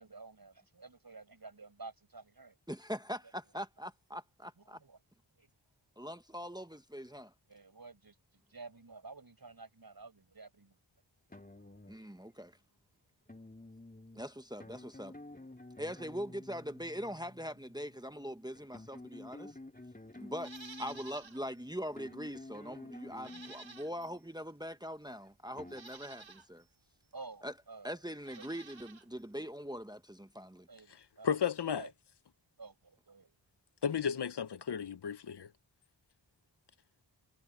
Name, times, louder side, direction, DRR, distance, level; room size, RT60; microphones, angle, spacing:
voice 1, 0.0-2.6 4.6-5.0 5.4-5.5 7.5-10.8 27.1-28.0 28.4-28.5 30.7-31.4 31.7-31.9 32.6-33.4, right 3 dB, 50° right, 7.2 m, -51 dB
voice 2, 2.7-4.8 6.0-7.3 11.9-12.6 14.1-15.2 15.8-19.6 20.1-20.5 20.8-26.6 27.4-27.5 27.8-30.7, equal, 10° right, 1.0 m, -42 dB
sound 1, 11.3-12.6 13.3-24.4 25.2-25.8, left 2 dB, 20° left, 3.2 m, -52 dB
Livestock farm animals working animals, 20.3-21.4 21.8-21.9 23.1-24.2 25.0-25.1 25.7-26.5 28.1-29.1 29.3-29.4, right 4 dB, 80° right, 3.8 m, -52 dB
voice 3, 31.2-31.9 33.8-35.5, left 7 dB, 60° left, 0.8 m, -33 dB
wide cardioid pair, 65°, 46 cm